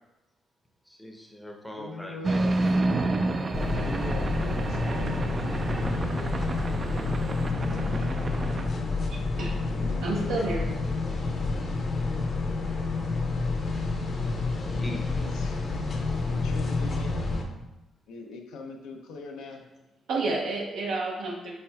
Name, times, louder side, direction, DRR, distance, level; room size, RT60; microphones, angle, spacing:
voice 1, 0.9-2.4 14.7-15.1, equal, 5° left, 1 dB, 0.6 m, -41 dB
voice 2, 1.8-2.8 3.7-5.3 5.8-6.3 7.7-8.5 9.7-10.5 15.1-15.6 16.3-17.2 18.1-19.6, left 3 dB, 85° left, 3 dB, 0.5 m, -42 dB
stone castle horror flick, 2.2-8.7, right 2 dB, 35° right, 0.3 m, -29 dB
sound 1, 3.5-17.4, left 3 dB, 40° left, 0.7 m, -29 dB
voice 3, 9.1-9.6 10.0-10.6 20.1-21.5, right 3 dB, 80° right, -2 dB, 0.6 m, -30 dB
4.4 x 4.2 x 2.3 m, 1.0 s
cardioid pair, 90°, 0 cm